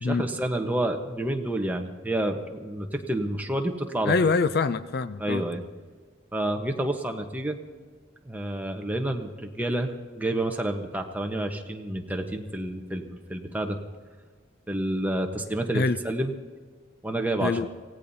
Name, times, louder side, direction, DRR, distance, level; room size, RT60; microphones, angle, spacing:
voice 1, 0.0-4.1 5.2-5.6 6.3-7.6 8.2-9.9 10.1-13.0 13.3-13.8 14.7-16.3 17.0-17.6, right 1 dB, 10° right, 3 dB, 1.1 m, -29 dB
voice 2, 4.0-5.4 15.7-16.0 17.4-17.7, left 4 dB, 55° left, 13 dB, 0.4 m, -24 dB
24.5 x 17.0 x 2.8 m, 1.5 s
head